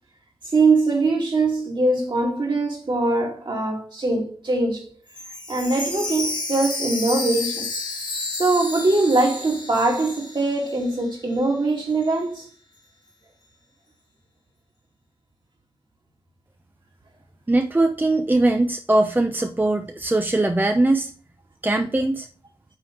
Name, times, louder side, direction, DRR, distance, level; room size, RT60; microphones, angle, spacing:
voice 1, 0.5-4.9 5.5-7.7 8.3-12.4, right 2 dB, 50° right, 2.8 m, -22 dB
Chime, 5.1-11.0 11.4-11.5 12.0-12.1, left 2 dB, 45° left, 1.4 m, -31 dB
voice 2, 17.5-21.1 21.6-22.3, right 2 dB, 20° right, 0.7 m, -21 dB
8.8 x 3.6 x 3.4 m
cardioid pair, 50°, 10 cm